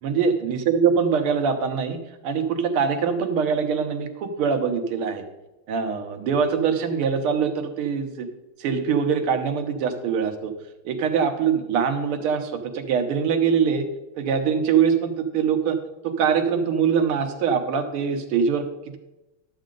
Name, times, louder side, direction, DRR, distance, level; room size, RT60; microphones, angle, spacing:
voice 1, 0.0-5.2 5.7-8.3 8.6-10.5 10.9-13.9 14.2-15.8 16.0-18.7, right 6 dB, 80° right, 6 dB, 1.9 m, -23 dB
11.5 x 7.4 x 3.8 m, 0.99 s
omnidirectional pair, 2.4 m